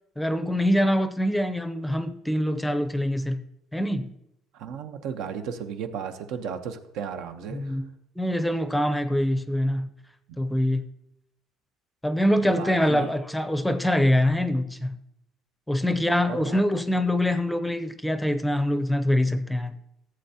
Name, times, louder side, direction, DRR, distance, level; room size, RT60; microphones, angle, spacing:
voice 1, 0.2-3.4 3.7-4.1 7.5-7.9 8.2-9.9 10.4-10.8 12.0-15.0 15.7-19.8, left 1 dB, 5° left, 0.6 m, -24 dB
voice 2, 4.5-7.8 12.4-13.1 15.9-16.6, right 7 dB, 75° right, 0.9 m, -35 dB
14.5 x 7.8 x 2.8 m
cardioid pair, 135°, 0 cm